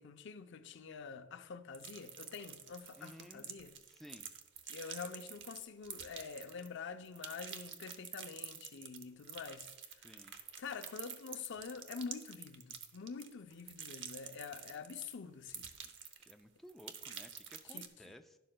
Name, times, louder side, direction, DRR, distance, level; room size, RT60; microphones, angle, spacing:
voice 1, 0.0-3.7 4.7-9.7 10.6-15.7 17.7-18.1, left 5 dB, 65° left, 0.5 m, -46 dB
sound 1, 1.7-6.8 7.0-15.1 15.5-16.4 16.7-17.9, right 8 dB, 65° right, 0.8 m, -48 dB
voice 2, 3.0-3.4 3.8-4.3 10.0-10.3 16.2-18.4, equal, ahead, 0.4 m, -56 dB
11.5 x 11.0 x 2.2 m
head